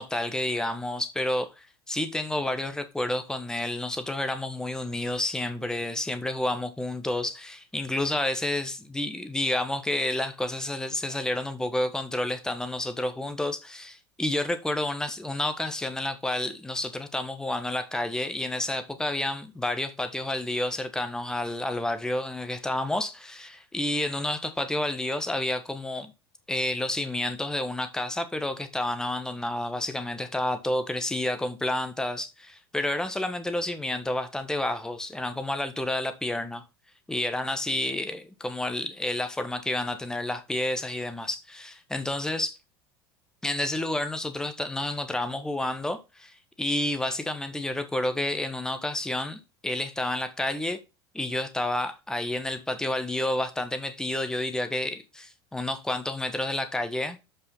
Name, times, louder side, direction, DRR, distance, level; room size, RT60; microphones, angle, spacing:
voice 1, 0.0-26.1 26.5-36.6 37.1-42.6 43.4-50.8 51.1-57.3, left 1 dB, 5° left, 1.2 m, -30 dB
7.7 x 5.7 x 4.0 m
figure-of-eight pair, 75°, 13 cm